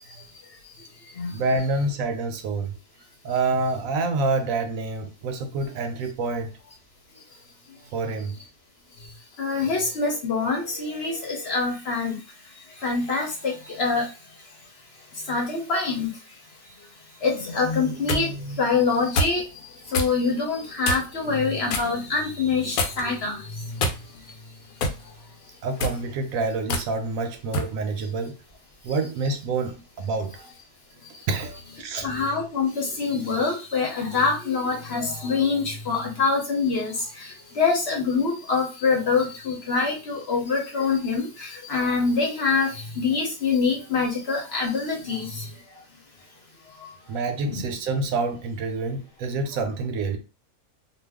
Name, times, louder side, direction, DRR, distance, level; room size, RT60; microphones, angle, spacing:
voice 1, 1.3-2.7 3.2-6.5 7.9-8.4 25.6-28.3 28.8-30.3 31.3-32.1 47.1-50.2, right 3 dB, 75° right, 1.0 m, -27 dB
voice 2, 9.4-12.1 12.8-14.1 15.3-16.1 17.2-19.4 19.9-23.6 32.0-45.5 47.4-47.6, left 4 dB, 50° left, 0.9 m, -25 dB
sound 1, 17.7-18.3 19.2-19.4 19.9-20.1 20.8-21.2 21.7-21.9 22.8-23.2 23.8-24.3 24.8-25.0 25.7-26.0 26.7-26.9 27.5-27.7, left 2 dB, 80° left, 1.1 m, -26 dB
2.5 x 2.4 x 3.4 m
omnidirectional pair, 1.5 m